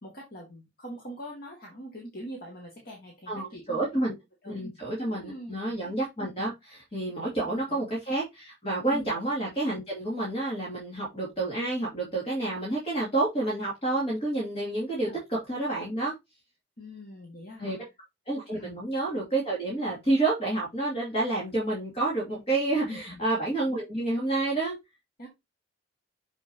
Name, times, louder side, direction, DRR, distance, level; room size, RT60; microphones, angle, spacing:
voice 1, 0.0-3.9 4.4-4.6 5.0-5.8 7.4-7.8 8.9-9.1 15.1-15.2 16.8-17.8 18.5-18.8 22.8-23.2 25.2-25.3, equal, 50° left, -1 dB, 2.2 m, -43 dB
voice 2, 3.3-4.1 4.5-16.1 17.6-17.9 18.3-24.8, right 2 dB, 30° left, -4 dB, 2.7 m, -29 dB
7.1 x 5.6 x 2.8 m, 0.20 s
head